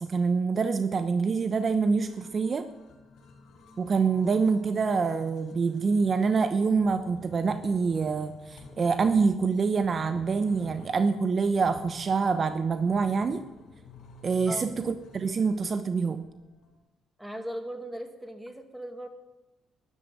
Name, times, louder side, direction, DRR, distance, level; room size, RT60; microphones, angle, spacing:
voice 1, 0.0-2.7 3.8-13.4 14.2-16.2, right 5 dB, 40° right, 10 dB, 0.9 m, -26 dB
sound 1, 1.0-16.8, left 3 dB, 75° left, 4.7 m, -52 dB
voice 2, 17.2-19.1, right 1 dB, 5° right, 6 dB, 2.2 m, -38 dB
13.0 x 12.0 x 9.1 m, 1.0 s
cardioid pair, 90°, 0 cm